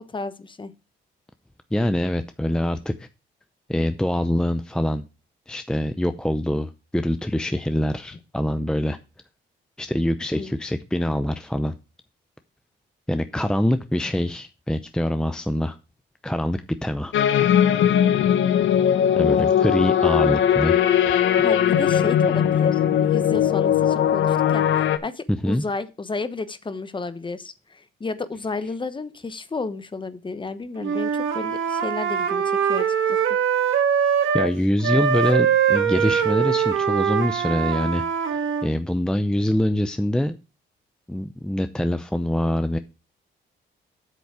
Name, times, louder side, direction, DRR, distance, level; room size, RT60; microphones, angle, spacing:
voice 1, 0.1-0.7 10.3-10.6 19.3-19.9 21.4-33.2, left 3 dB, 25° left, 13 dB, 1.1 m, -32 dB
voice 2, 1.7-3.1 3.7-5.0 5.5-9.0 9.8-11.7 13.1-15.8 16.2-17.1 19.2-20.8 25.3-25.6 34.3-38.0 38.3-40.3 41.1-42.8, left 1 dB, 5° left, 9 dB, 0.6 m, -24 dB
sound 1, 17.1-25.0, left 9 dB, 75° left, 0.9 m, -19 dB
Wind instrument woodwind instrument, 30.8-34.5 34.8-38.7, right 7 dB, 80° right, 1.6 m, -22 dB
8.2 x 7.0 x 4.8 m, 0.29 s
cardioid pair, 90°, 20 cm